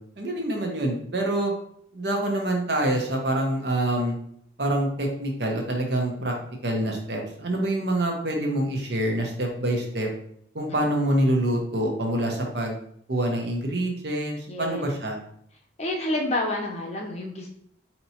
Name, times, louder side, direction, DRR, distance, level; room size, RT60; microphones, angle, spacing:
voice 1, 0.2-1.5 1.9-4.1 4.6-6.3 6.6-10.1 10.5-12.8 13.1-15.2, right 1 dB, 60° right, 1 dB, 0.7 m, -26 dB
voice 2, 14.5-14.8 15.8-17.5, left 1 dB, 35° left, 1 dB, 0.6 m, -29 dB
4.4 x 2.9 x 2.7 m, 0.68 s
head